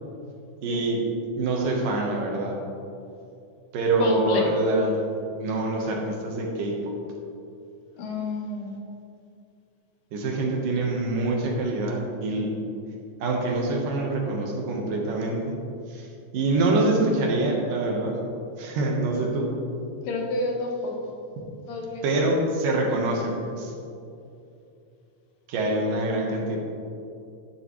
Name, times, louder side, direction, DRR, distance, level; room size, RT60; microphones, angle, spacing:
voice 1, 0.6-1.0 1.4-2.7 3.7-5.0 5.4-7.0 10.1-12.5 13.2-15.6 15.9-16.1 16.3-18.2 18.6-19.5 22.0-23.7 25.5-26.6, right 2 dB, 70° right, 0 dB, 2.8 m, -25 dB
voice 2, 4.0-4.5 8.0-8.8 20.0-21.1 21.7-22.0, left 2 dB, 75° left, 0 dB, 2.8 m, -29 dB
12.0 x 11.5 x 3.2 m, 2.6 s
omnidirectional pair, 4.1 m